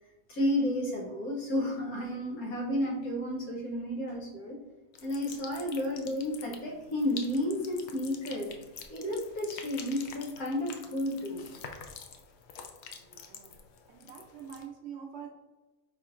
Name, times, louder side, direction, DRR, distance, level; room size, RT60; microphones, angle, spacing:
voice 1, 0.3-4.6 5.0-8.6 8.9-11.5, left 1 dB, 90° left, -1 dB, 1.4 m, -32 dB
sound 1, 4.9-14.6, left 6 dB, 65° left, 0.7 m, -47 dB
voice 2, 13.1-13.6 13.9-15.3, right 7 dB, 60° right, 2 dB, 0.8 m, -45 dB
4.3 x 4.3 x 2.4 m, 1.1 s
omnidirectional pair, 1.5 m